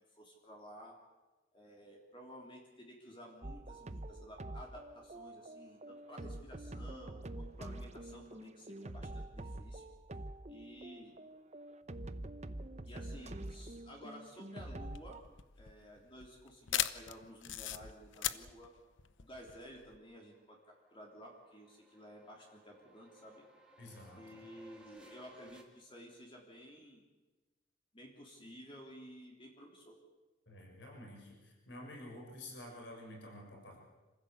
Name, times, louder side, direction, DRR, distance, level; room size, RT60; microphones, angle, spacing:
voice 1, 0.1-1.0 1.5-9.8 10.5-11.1 12.9-15.2 15.6-18.7 19.2-23.4 24.1-27.0 27.9-30.0, equal, 25° left, 0 dB, 3.4 m, -53 dB
sound 1, 3.4-15.2, right 1 dB, 35° right, 0.9 m, -46 dB
sound 2, 14.8-20.0, left 11 dB, 80° left, 0.9 m, -39 dB
sound 3, 19.0-25.6, right 1 dB, 5° right, 2.7 m, -62 dB
voice 2, 23.8-24.2 30.5-33.8, left 1 dB, 65° left, 0 dB, 6.6 m, -50 dB
27.0 x 15.5 x 8.2 m, 1.2 s
head